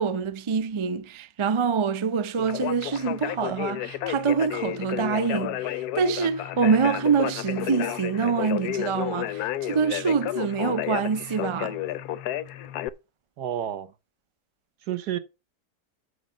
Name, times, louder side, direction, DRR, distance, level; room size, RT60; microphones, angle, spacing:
voice 1, 0.0-11.8, right 6 dB, 50° right, 0.3 m, -25 dB
Conversation, 2.4-12.9, left 13 dB, 75° left, 1.2 m, -31 dB
voice 2, 13.4-13.9 14.8-15.2, right 11 dB, 80° right, 1.5 m, -30 dB
6.5 x 6.4 x 7.2 m
omnidirectional pair, 1.7 m